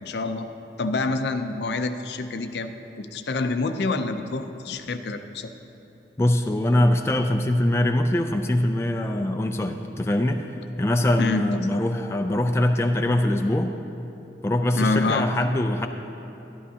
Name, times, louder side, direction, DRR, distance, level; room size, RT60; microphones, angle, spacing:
voice 1, 0.0-0.5 0.8-5.5 11.2-11.5 14.8-15.3, left 3 dB, 70° left, 8 dB, 0.5 m, -27 dB
voice 2, 6.2-10.5 10.8-13.7 14.4-15.9, left 1 dB, 15° left, 5 dB, 0.3 m, -23 dB
12.0 x 11.5 x 2.8 m, 3.0 s
head